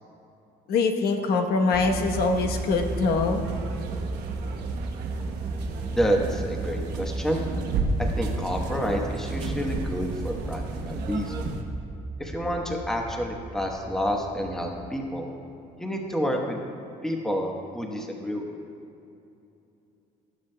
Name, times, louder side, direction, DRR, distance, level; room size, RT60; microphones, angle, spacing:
voice 1, 0.7-3.4, left 4 dB, 65° left, 4 dB, 1.0 m, -23 dB
sound 1, 1.7-14.9, right 3 dB, 20° right, 0.5 m, -34 dB
sound 2, 1.7-11.6, right 3 dB, 75° right, 1.1 m, -34 dB
voice 2, 6.0-7.5 8.0-11.3 12.2-15.3 15.8-16.6 17.0-18.7, equal, 5° left, 1 dB, 1.0 m, -29 dB
19.0 x 7.3 x 2.2 m, 2.7 s
cardioid pair, 110°, 17 cm